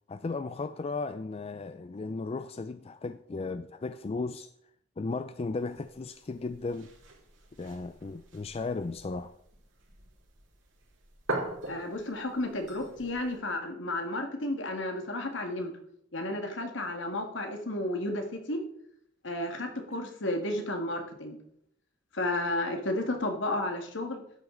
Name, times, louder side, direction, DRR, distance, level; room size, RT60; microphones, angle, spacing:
voice 1, 0.1-4.5 5.0-6.9 7.6-9.3, left 3 dB, 30° left, 0.4 m, -35 dB
sound 1, 5.6-13.4, right 2 dB, 75° right, 4.6 m, -42 dB
voice 2, 11.7-15.7 16.1-18.6 19.2-21.4 22.1-24.2, left 1 dB, 65° left, 1.9 m, -32 dB
12.5 x 9.3 x 3.9 m
head